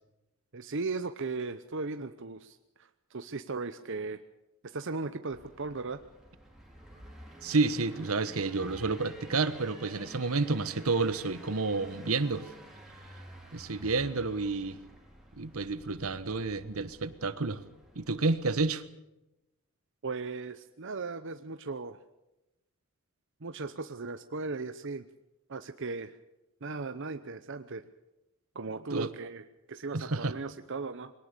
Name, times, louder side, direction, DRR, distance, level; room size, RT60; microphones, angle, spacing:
voice 1, 0.5-4.2 4.6-6.0 11.8-12.0 20.0-22.0 23.4-25.1 25.5-26.1 26.6-27.8 28.5-31.1, right 3 dB, 60° right, 9 dB, 0.8 m, -37 dB
sound 1, 5.3-18.6, equal, ahead, 4.5 m, -51 dB
voice 2, 7.4-12.5 13.5-14.8 15.4-17.6 17.9-18.8 28.9-29.1 29.9-30.3, right 3 dB, 80° right, 14 dB, 1.3 m, -30 dB
22.0 x 18.5 x 6.8 m, 0.93 s
head